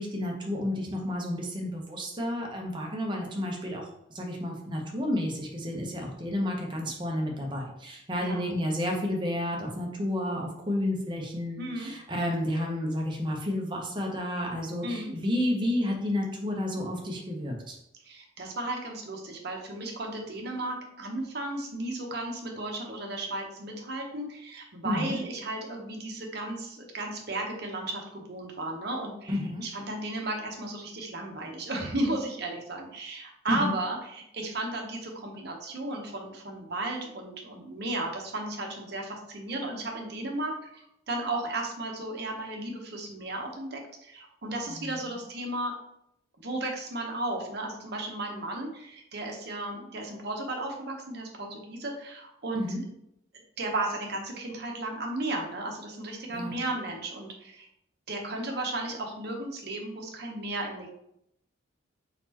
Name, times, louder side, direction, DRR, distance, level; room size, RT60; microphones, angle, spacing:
voice 1, 0.0-17.8 24.8-25.2 29.3-29.6 33.5-33.7 44.7-45.2 52.5-52.8 56.3-56.6, left 1 dB, 25° right, 0 dB, 0.8 m, -31 dB
voice 2, 8.2-8.5 11.6-11.9 14.8-15.1 18.0-45.7 46.4-52.6 53.6-57.7 58.1-60.9, right 2 dB, 55° right, 1 dB, 0.9 m, -34 dB
4.2 x 4.1 x 2.9 m, 0.78 s
head